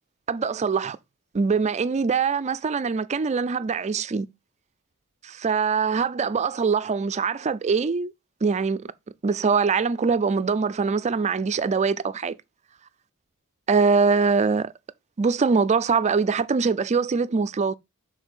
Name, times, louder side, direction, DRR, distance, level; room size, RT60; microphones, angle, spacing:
voice 1, 0.3-1.0 1.3-4.3 5.2-8.1 8.4-8.9 9.2-12.4 13.7-14.7 15.2-17.8, right 5 dB, 30° right, 0.4 m, -23 dB
6.3 x 3.9 x 5.0 m
head